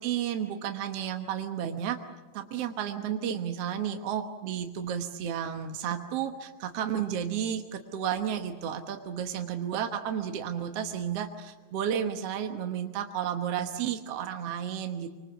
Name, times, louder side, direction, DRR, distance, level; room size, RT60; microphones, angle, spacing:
voice 1, 0.0-2.0 2.3-15.2, right 9 dB, 65° right, 5 dB, 1.6 m, -32 dB
25.5 x 25.5 x 7.0 m, 1.2 s
omnidirectional pair, 4.4 m